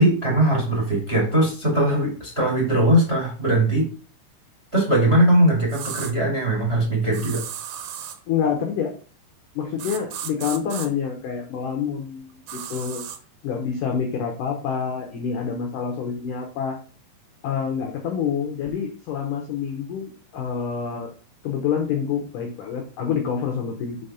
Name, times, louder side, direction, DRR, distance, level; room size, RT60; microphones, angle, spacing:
voice 1, 0.0-3.9 4.7-7.4, right 1 dB, 20° right, -1 dB, 1.7 m, -20 dB
sound 1, 5.7-6.1 7.1-8.2 9.8-10.9 12.5-13.2, right 9 dB, 75° right, 2.6 m, -34 dB
voice 2, 8.3-8.9 9.6-13.0 13.4-16.8 17.4-21.1 21.4-24.0, left 7 dB, 80° left, 3 dB, 1.9 m, -27 dB
5.8 x 5.2 x 5.6 m, 0.38 s
omnidirectional pair, 5.2 m